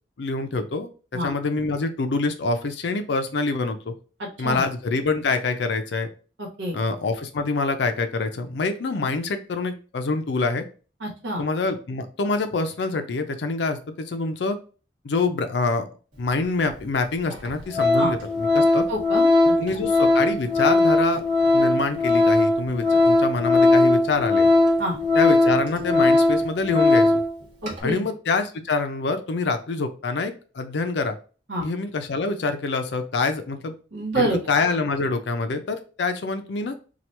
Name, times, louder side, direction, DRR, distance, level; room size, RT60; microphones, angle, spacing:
voice 1, 0.2-0.9 1.2-3.9 4.4-6.1 6.7-10.6 11.4-14.6 15.0-15.8 16.2-18.8 19.6-21.2 21.5-24.5 25.1-27.2 27.8-31.2 31.6-33.7 34.2-36.7, left 3 dB, 65° left, 7 dB, 0.5 m, -26 dB
voice 2, 6.4-6.8 11.0-11.4 18.0-18.1 18.9-19.5 24.8-25.0 27.6-28.0 31.5-31.7 33.9-34.4, right 1 dB, 80° right, -2 dB, 1.2 m, -27 dB
Organ, 16.7-16.8 17.3-17.5 17.7-27.3 27.6-27.8, left 2 dB, 45° right, 1.2 m, -19 dB
2.9 x 2.3 x 3.2 m, 0.36 s
head